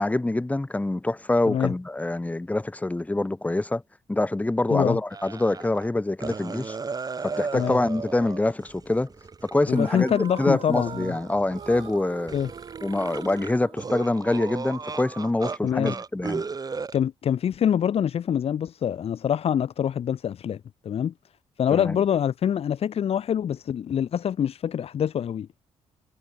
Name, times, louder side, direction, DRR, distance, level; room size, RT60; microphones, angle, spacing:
voice 1, 0.0-3.8 4.1-6.8 7.2-9.1 9.5-12.3 12.8-16.4 21.7-22.0, left 2 dB, 10° left, 1.5 m, -25 dB
sound 1, 5.1-5.9 6.2-10.4 10.7-12.0 12.3-15.6 15.8-17.0, right 4 dB, 35° right, 2.8 m, -35 dB
voice 2, 9.7-11.1 12.3-12.5 15.6-15.9 16.9-20.6 20.8-21.1 21.6-25.5, left 9 dB, 60° left, 1.6 m, -25 dB
sound 2, 9.7-14.5, right 8 dB, 60° right, 4.1 m, -42 dB
cardioid pair, 90°, 12 cm